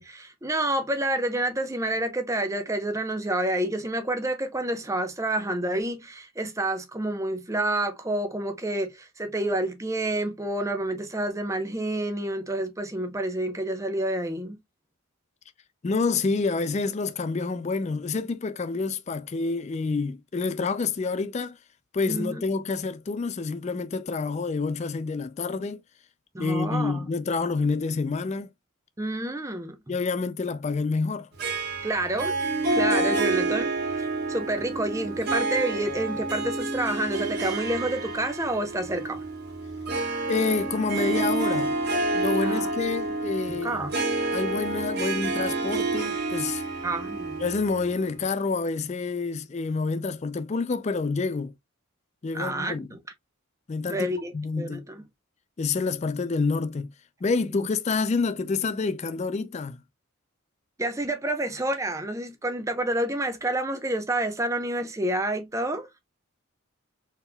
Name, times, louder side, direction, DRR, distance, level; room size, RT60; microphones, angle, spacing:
voice 1, 0.0-14.6 22.1-22.4 26.3-27.1 29.0-30.0 31.8-32.4 32.7-39.2 42.4-42.7 43.5-43.9 46.8-47.5 52.3-53.0 53.9-54.3 54.6-55.1 57.5-57.7 60.8-65.9, right 1 dB, 15° right, 0.6 m, -29 dB
voice 2, 15.8-21.6 21.9-25.8 26.4-28.5 29.9-31.3 40.3-41.8 42.1-43.8 44.3-46.6 47.4-51.5 52.2-52.9 53.7-54.8 55.6-56.9 57.2-59.8, left 4 dB, 30° left, 0.3 m, -28 dB
Harp, 31.4-48.1, right 3 dB, 45° right, 1.6 m, -29 dB
4.3 x 3.6 x 2.2 m
head